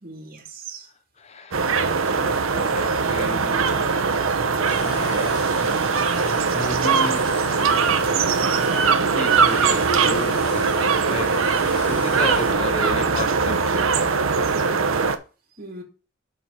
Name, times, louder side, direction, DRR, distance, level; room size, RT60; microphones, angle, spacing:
voice 1, 0.0-0.9 8.5-8.8 11.8-12.1 15.6-15.8, right 2 dB, 45° right, 2.5 m, -38 dB
voice 2, 1.2-5.8 6.5-7.3 9.0-11.4 11.7-13.9, left 2 dB, 30° left, 0.6 m, -34 dB
sound 1, 1.5-15.2, right 5 dB, 85° right, 0.8 m, -21 dB
sound 2, 4.6-12.5, left 2 dB, 80° left, 3.7 m, -38 dB
Keyboard (musical), 9.9-12.7, equal, 60° left, 2.8 m, -36 dB
6.8 x 4.6 x 5.5 m
head